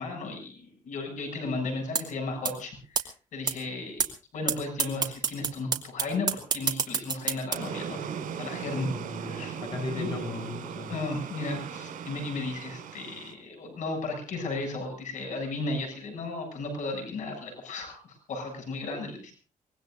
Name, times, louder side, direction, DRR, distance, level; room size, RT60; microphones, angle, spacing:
voice 1, 0.0-4.0 4.3-8.0 8.4-8.9 9.2-9.6 9.9-10.1 10.9-19.3, left 3 dB, 65° left, 4 dB, 7.5 m, -35 dB
sound 1, 2.0-2.1 2.4-2.5 3.0-3.1 3.5-3.6 4.0-4.1 4.5-4.6 4.8-7.5, right 5 dB, 30° right, 2.5 m, -25 dB
sound 2, 7.5-13.3, right 7 dB, 80° right, 5.0 m, -38 dB
voice 2, 8.8-11.0, left 2 dB, 35° left, 3 dB, 7.4 m, -37 dB
24.5 x 21.5 x 2.6 m, 0.37 s
cardioid pair, 150°, 14 cm